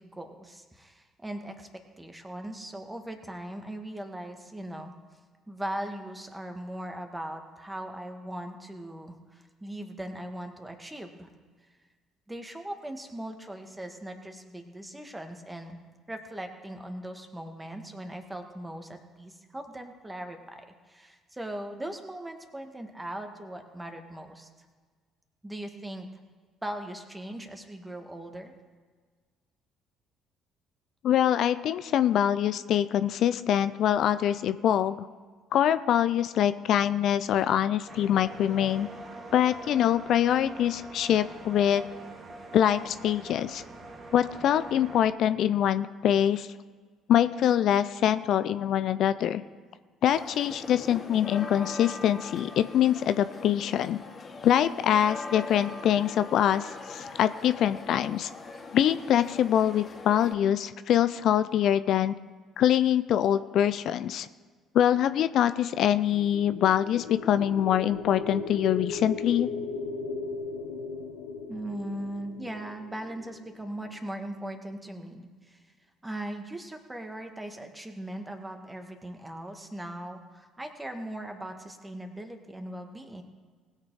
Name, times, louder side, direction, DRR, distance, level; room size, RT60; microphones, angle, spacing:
voice 1, 0.0-4.9 5.5-11.3 12.3-15.8 16.1-24.5 25.4-26.1 26.6-28.5 71.5-75.6 76.0-83.2, right 1 dB, 15° right, 5 dB, 1.8 m, -39 dB
voice 2, 31.0-35.1 35.5-38.9 39.3-41.8 42.5-43.6 44.1-46.5 47.1-49.4 50.0-54.0 54.4-58.3 58.7-62.1 62.6-64.3 64.7-69.5, left 10 dB, 60° left, 13 dB, 0.4 m, -24 dB
sound 1, 37.9-45.1, right 2 dB, 45° right, 1.9 m, -44 dB
sound 2, 50.1-60.3, left 3 dB, 40° left, 2.3 m, -42 dB
sound 3, 65.9-74.0, left 4 dB, 80° left, 1.2 m, -37 dB
19.5 x 6.6 x 4.8 m, 1.5 s
hypercardioid pair, 50°, 0 cm